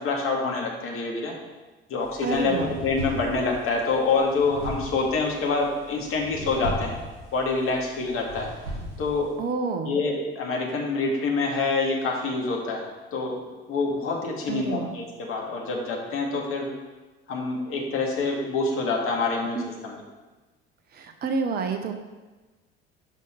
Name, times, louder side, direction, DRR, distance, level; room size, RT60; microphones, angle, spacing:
voice 1, 0.0-1.3 1.9-6.9 7.3-8.5 9.0-9.3 9.9-12.8 13.1-13.4 13.7-16.7 17.3-20.0, left 3 dB, 45° left, -1 dB, 1.9 m, -26 dB
sound 1, 2.0-9.4, right 1 dB, 70° right, 2.3 m, -38 dB
voice 2, 2.2-2.8 9.4-10.0 14.5-14.9 19.5-19.6 20.9-21.9, right 5 dB, 30° right, 6 dB, 0.7 m, -29 dB
6.4 x 5.1 x 5.5 m, 1.2 s
figure-of-eight pair, 60°, 30 cm